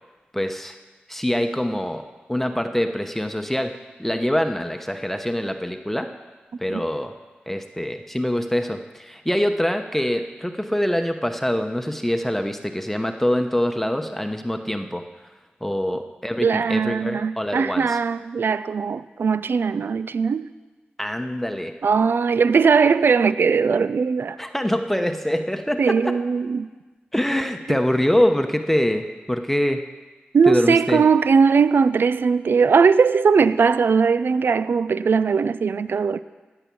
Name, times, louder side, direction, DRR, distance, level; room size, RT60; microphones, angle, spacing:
voice 1, 0.3-0.8 1.1-2.0 2.3-3.7 4.0-6.1 6.6-7.1 7.5-15.0 15.6-18.0 21.0-21.7 24.4-26.1 27.1-29.8 30.5-31.0, equal, 5° left, 0.9 m, -24 dB
voice 2, 16.4-20.5 21.8-24.4 25.8-26.7 27.7-27.8 30.3-36.2, right 5 dB, 65° right, 0.4 m, -19 dB
15.0 x 5.9 x 8.5 m
cardioid pair, 40°, 4 cm